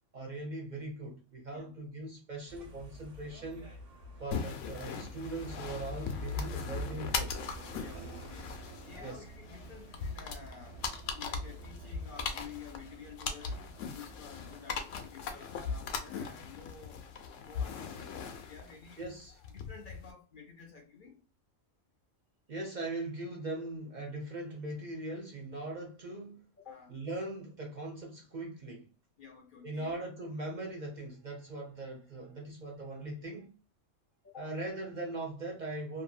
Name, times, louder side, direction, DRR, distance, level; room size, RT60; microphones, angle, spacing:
voice 1, 0.1-3.7 4.2-7.3 8.9-9.2 19.0-19.4 22.5-26.4 26.9-28.9 29.6-33.5 34.4-36.0, right 2 dB, 50° right, 0.6 m, -40 dB
sound 1, 2.5-14.6, right 1 dB, 75° right, 1.3 m, -48 dB
sound 2, 4.3-20.1, left 5 dB, 80° left, 0.9 m, -39 dB
voice 2, 7.7-8.5 8.8-10.8 11.1-17.0 17.4-19.1 19.5-21.2 26.6-26.9 29.2-30.0 34.2-34.5, left 6 dB, 55° left, 0.6 m, -51 dB
2.7 x 2.6 x 2.3 m
omnidirectional pair, 1.3 m